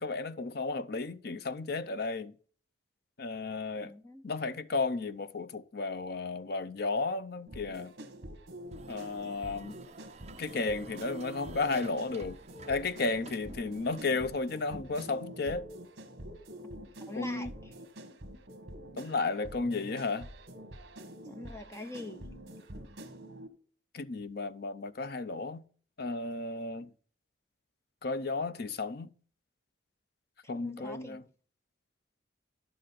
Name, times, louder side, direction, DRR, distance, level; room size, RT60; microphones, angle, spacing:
voice 1, 0.0-2.3 3.2-3.9 4.2-7.9 8.9-9.8 10.4-12.4 12.7-15.7 17.2-17.5 19.0-20.3 23.9-25.6 26.0-26.9 28.0-29.1 30.5-31.2, left 3 dB, 50° left, 0.6 m, -33 dB
voice 2, 3.8-4.2 16.6-17.7 21.2-22.3 30.6-31.2, left 2 dB, 15° left, 0.8 m, -44 dB
sound 1, 7.5-23.5, right 1 dB, 55° right, 1.5 m, -47 dB
sound 2, 8.7-14.5, right 4 dB, 30° right, 0.5 m, -52 dB
11.0 x 7.6 x 4.1 m
head